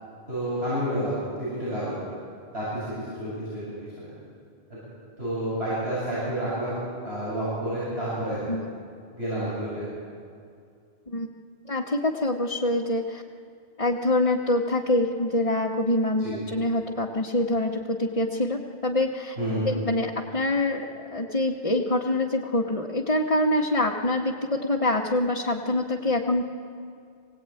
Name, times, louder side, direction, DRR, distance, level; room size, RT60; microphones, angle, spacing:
voice 1, 0.3-2.0 2.5-2.7 3.2-4.1 5.2-8.4 9.1-9.9 16.2-16.3 19.4-19.6, right 1 dB, 85° right, -10 dB, 8.2 m, -29 dB
voice 2, 11.7-13.2 13.8-19.3 19.6-26.4, left 1 dB, 35° left, -2 dB, 1.4 m, -25 dB
24.0 x 18.0 x 9.1 m, 2.3 s
omnidirectional pair, 1.0 m